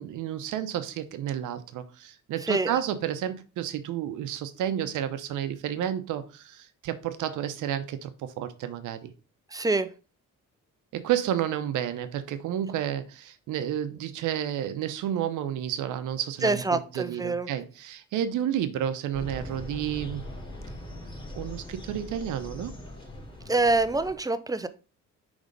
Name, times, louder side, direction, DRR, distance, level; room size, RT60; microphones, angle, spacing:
voice 1, 0.0-9.1 10.9-20.3 21.3-22.7, right 10 dB, 85° right, 0.8 m, -31 dB
voice 2, 2.4-2.8 9.5-9.9 16.4-17.5 23.5-24.7, right 3 dB, 10° right, 0.5 m, -26 dB
sound 1, 19.1-24.1, left 1 dB, 15° left, 2.9 m, -41 dB
5.3 x 3.5 x 5.0 m
cardioid pair, 90°, 30 cm